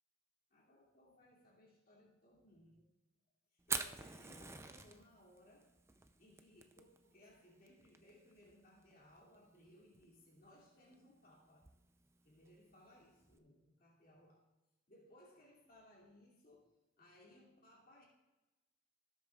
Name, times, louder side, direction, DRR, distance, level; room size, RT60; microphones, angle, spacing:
voice 1, 0.5-2.9 3.5-5.7 6.2-11.7 12.2-14.5 14.9-18.1, left 1 dB, 50° left, -4 dB, 2.8 m, -64 dB
Fire, 3.6-13.4, right 4 dB, 15° right, 0.5 m, -48 dB
18.0 x 8.2 x 2.4 m, 1.0 s
head